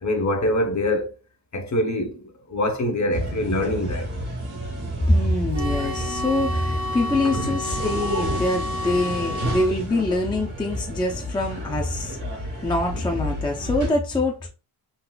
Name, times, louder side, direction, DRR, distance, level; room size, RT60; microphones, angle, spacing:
voice 1, 0.0-1.1 1.5-4.1 7.2-7.6, left 1 dB, 35° left, 0.8 m, -24 dB
sound 1, 3.1-13.9, right 1 dB, 75° right, 1.8 m, -31 dB
voice 2, 5.1-14.5, left 1 dB, 10° left, 0.4 m, -24 dB
sound 2, 5.5-9.7, left 2 dB, 60° right, 1.3 m, -31 dB
3.8 x 2.4 x 2.3 m
cardioid pair, 90°, 47 cm